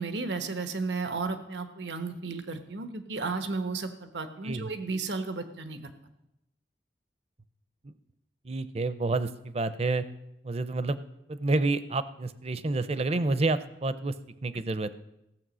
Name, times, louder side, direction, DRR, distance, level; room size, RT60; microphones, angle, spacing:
voice 1, 0.0-5.8, right 4 dB, 90° right, 8 dB, 1.1 m, -33 dB
voice 2, 8.4-10.0 10.4-11.0 11.3-14.1 14.4-14.9, right 2 dB, 35° right, 13 dB, 0.6 m, -29 dB
15.5 x 7.5 x 6.2 m, 0.86 s
head